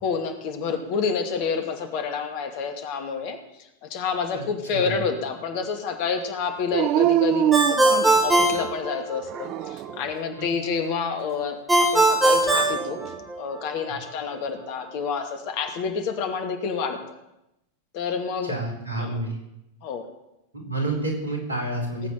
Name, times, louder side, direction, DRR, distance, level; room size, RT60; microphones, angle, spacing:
voice 1, 0.0-3.4 3.8-13.0 13.4-17.0 17.9-18.5 19.0-19.2 19.8-20.1 22.0-22.1, left 5 dB, 45° left, 6 dB, 2.4 m, -28 dB
Dog, 6.7-8.6 9.3-10.1 12.3-13.2, right 13 dB, 40° right, 0.5 m, -25 dB
Ringtone, 7.5-9.5 11.7-13.6, right 2 dB, 5° right, 3.4 m, -20 dB
voice 2, 18.5-19.4 20.5-22.1, right 2 dB, 75° right, 2 dB, 4.8 m, -29 dB
18.5 x 8.4 x 9.0 m, 0.87 s
figure-of-eight pair, 90°, 0 cm